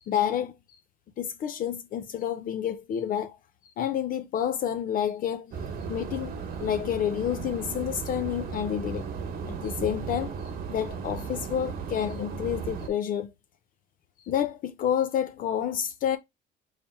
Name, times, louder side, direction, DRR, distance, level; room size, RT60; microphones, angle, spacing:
voice 1, 0.1-0.5 1.2-3.4 3.8-5.5 5.9-6.3 6.6-9.1 9.5-10.3 10.7-13.3 14.2-16.2, left 9 dB, 55° left, 0.5 m, -29 dB
sound 1, 5.5-12.9, right 6 dB, 65° right, 1.1 m, -36 dB
3.3 x 2.8 x 4.5 m
cardioid pair, 110°, 17 cm